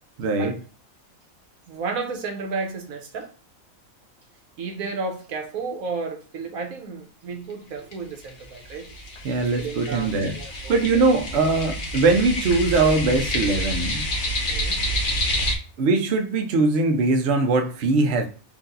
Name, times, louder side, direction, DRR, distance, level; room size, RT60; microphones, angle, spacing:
voice 1, 0.2-0.5 9.2-10.4 10.7-14.1 15.8-18.3, right 3 dB, 55° right, 0.9 m, -21 dB
voice 2, 1.7-3.3 4.6-8.9 9.6-11.0 14.5-14.8, right 4 dB, 80° right, 1.3 m, -32 dB
sound 1, 7.5-7.6 7.9-8.0 8.3-15.5, equal, 55° left, 1.4 m, -28 dB
4.3 x 2.7 x 3.9 m
omnidirectional pair, 1.5 m